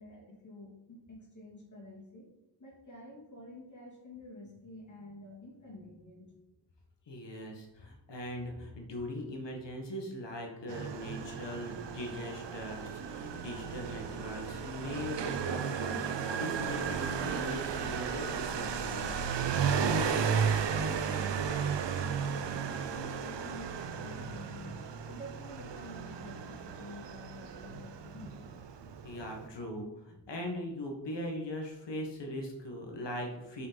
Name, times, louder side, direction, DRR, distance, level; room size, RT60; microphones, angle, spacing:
voice 1, 0.0-2.3 2.6-6.3 7.0-7.4 20.3-24.8 25.0-28.5, left 1 dB, 45° left, -3 dB, 2.5 m, -49 dB
voice 2, 7.1-19.3 29.0-33.7, equal, 85° left, 2 dB, 1.7 m, -40 dB
Motorcycle, 10.7-29.5, right 6 dB, 85° right, 0.7 m, -34 dB
sound 1, 16.5-23.1, left 2 dB, 65° left, 1.3 m, -52 dB
6.6 x 5.2 x 5.3 m, 0.94 s
wide cardioid pair, 130°, 42 cm